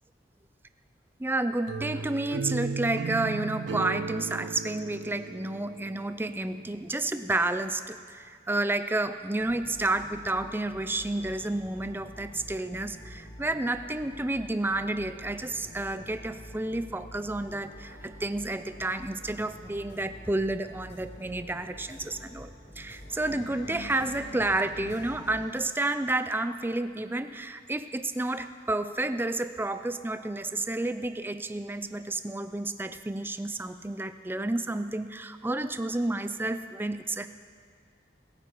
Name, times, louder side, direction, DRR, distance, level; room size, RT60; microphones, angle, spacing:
voice 1, 1.2-22.5 22.8-37.3, right 2 dB, 10° right, 10 dB, 0.4 m, -30 dB
sound 1, 1.7-6.6, right 5 dB, 75° right, 0.3 m, -35 dB
sound 2, 9.4-25.8, equal, 55° left, 3.7 m, -47 dB
sound 3, 23.0-25.9, left 3 dB, 70° left, 0.6 m, -46 dB
21.5 x 9.2 x 4.5 m, 2.1 s
head